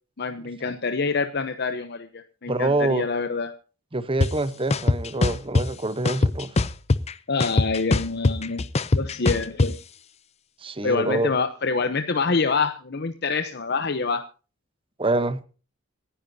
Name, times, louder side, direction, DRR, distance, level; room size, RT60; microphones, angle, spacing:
voice 1, 0.2-3.5 7.3-8.7 8.9-9.7 10.8-14.3, left 4 dB, 55° left, 0.8 m, -26 dB
voice 2, 2.5-3.1 3.9-6.5 10.6-11.3 15.0-15.4, right 2 dB, 25° right, 1.0 m, -25 dB
sound 1, 4.2-4.3 4.7-5.7 6.1-7.1 7.4-9.7, left 3 dB, 35° left, 0.6 m, -21 dB
26.5 x 10.5 x 2.8 m
head